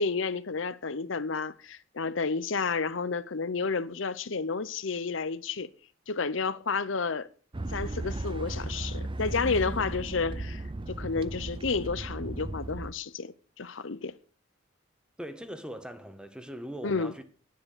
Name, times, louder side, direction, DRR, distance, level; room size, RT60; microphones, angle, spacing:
voice 1, 0.0-5.7 6.1-7.3 7.7-14.1 16.8-17.1, left 4 dB, 65° left, 0.8 m, -31 dB
sound 1, 7.5-12.9, right 2 dB, 25° right, 0.6 m, -35 dB
voice 2, 15.2-17.2, equal, 5° right, 1.4 m, -40 dB
10.5 x 9.9 x 8.3 m
head